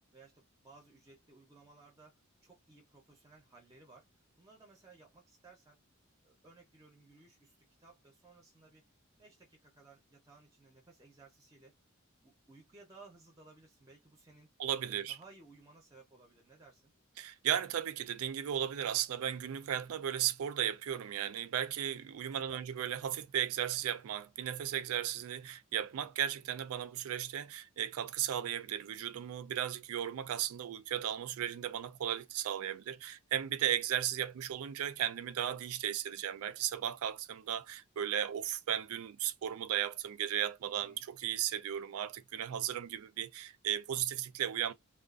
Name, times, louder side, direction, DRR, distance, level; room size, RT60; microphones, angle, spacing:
voice 1, 0.1-5.8 6.2-8.8 9.2-11.7 12.2-14.5 14.8-16.9 22.3-22.7 40.7-41.0, right 3 dB, 15° right, 0.6 m, -59 dB
voice 2, 14.6-15.2 17.2-44.7, right 10 dB, 80° right, 0.3 m, -35 dB
2.4 x 2.3 x 2.3 m
head